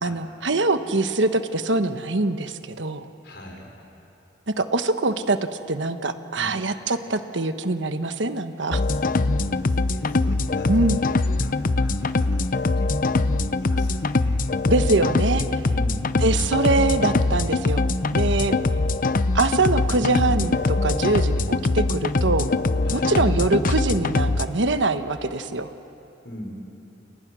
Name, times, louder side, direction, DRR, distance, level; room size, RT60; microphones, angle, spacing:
voice 1, 0.0-3.1 4.5-5.4 5.7-8.8 10.7-11.0 14.7-15.6 16.2-17.9 18.1-18.6 19.3-22.5 22.9-25.7, right 2 dB, 85° right, 9 dB, 1.2 m, -23 dB
voice 2, 3.2-3.7 6.3-6.5 8.9-14.5 15.6-16.1 22.8-23.2 26.2-26.6, left 1 dB, 65° left, 1 dB, 5.1 m, -42 dB
sound 1, 8.7-24.5, left 3 dB, 50° left, 0.7 m, -23 dB
29.5 x 28.5 x 6.3 m, 3.0 s
head